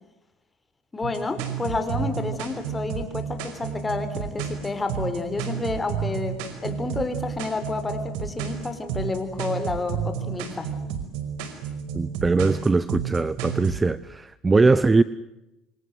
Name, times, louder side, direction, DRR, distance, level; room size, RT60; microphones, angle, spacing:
voice 1, 0.9-10.7, left 3 dB, 20° left, 9 dB, 5.1 m, -30 dB
sound 1, 1.0-13.8, right 8 dB, 80° right, 5.2 m, -31 dB
voice 2, 11.9-15.0, right 3 dB, 20° right, 17 dB, 0.9 m, -21 dB
27.0 x 27.0 x 8.2 m, 0.91 s
supercardioid pair, 100°, 0 cm